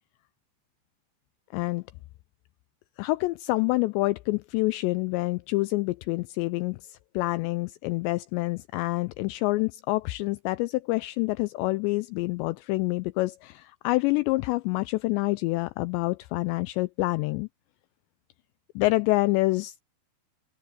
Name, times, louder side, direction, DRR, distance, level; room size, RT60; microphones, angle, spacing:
voice 1, 1.5-1.8 3.0-17.5 18.8-19.8, left 21 dB, 85° left, 2.5 m, -27 dB
open air
omnidirectional pair, 5.5 m